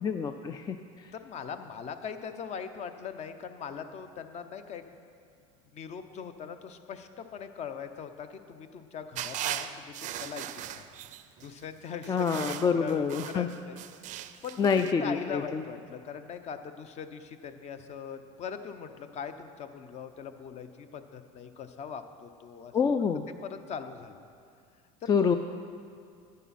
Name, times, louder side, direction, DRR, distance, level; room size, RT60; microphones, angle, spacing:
voice 1, 0.0-0.8 12.1-13.5 14.6-15.6 22.7-23.3 25.1-25.4, left 6 dB, 20° left, 8 dB, 0.4 m, -27 dB
voice 2, 1.1-4.8 5.7-10.4 10.7-10.8 11.4-13.8 14.2-14.7 15.0-22.7 23.4-24.2 25.0-25.4, left 7 dB, 40° left, 9 dB, 0.7 m, -41 dB
sound 1, 9.1-11.5 12.0-14.9, right 12 dB, 45° right, 0.5 m, -38 dB
10.5 x 9.3 x 4.2 m, 2.4 s
supercardioid pair, 105°, 17 cm